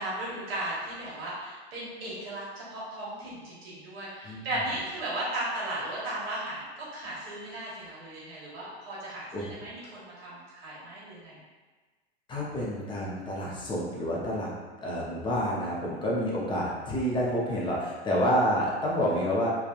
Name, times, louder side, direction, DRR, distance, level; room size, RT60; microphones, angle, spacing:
voice 1, 0.0-11.4, right 1 dB, 60° right, -6 dB, 1.3 m, -36 dB
voice 2, 12.3-14.5 14.8-19.5, equal, 15° left, -5 dB, 0.6 m, -28 dB
3.2 x 2.4 x 2.3 m, 1.3 s
figure-of-eight pair, 95°, 34 cm